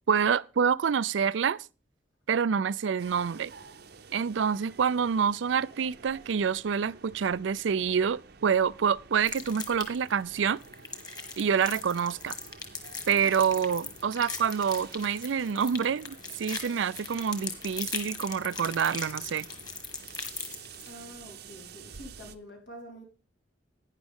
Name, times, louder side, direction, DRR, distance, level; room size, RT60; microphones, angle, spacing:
voice 1, 0.1-1.7 2.3-3.5 4.1-10.6 11.4-12.4 13.1-19.5, right 7 dB, 85° right, 0.4 m, -27 dB
sound 1, 3.0-22.4, right 5 dB, 60° right, 0.8 m, -50 dB
sound 2, 9.2-10.1 10.6-20.9, left 4 dB, 20° left, 1.8 m, -39 dB
voice 2, 20.8-23.0, equal, 80° left, 4.3 m, -47 dB
11.5 x 10.0 x 3.6 m
head